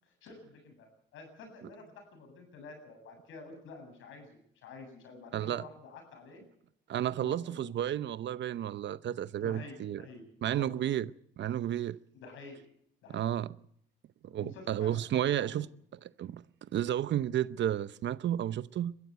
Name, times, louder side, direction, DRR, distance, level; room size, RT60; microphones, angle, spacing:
voice 1, 0.0-6.4 7.2-7.8 9.4-10.2 10.5-10.8 12.2-12.6 13.0-13.3 14.3-15.7, left 3 dB, 85° left, 7.9 m, -49 dB
voice 2, 5.3-5.6 6.9-10.0 10.4-11.1 11.4-12.0 13.1-13.5 14.2-15.7 16.0-16.4 16.7-19.0, right 11 dB, 65° right, 0.8 m, -32 dB
22.0 x 14.5 x 8.0 m
cardioid pair, 90°, 20 cm